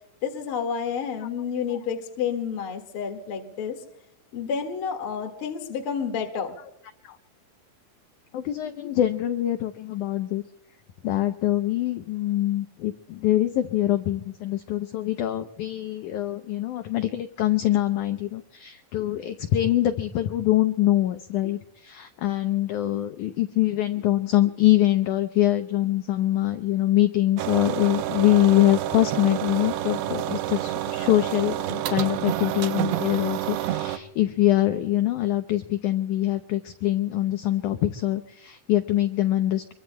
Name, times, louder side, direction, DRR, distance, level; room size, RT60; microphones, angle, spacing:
voice 1, 0.2-3.8 4.3-6.6, left 7 dB, 45° left, 3 dB, 2.1 m, -30 dB
voice 2, 8.3-10.4 11.0-39.7, left 14 dB, 90° left, 8 dB, 1.7 m, -24 dB
sound 1, 27.4-34.0, right 13 dB, 85° right, 2.8 m, -28 dB
26.5 x 23.5 x 2.2 m, 0.81 s
omnidirectional pair, 4.5 m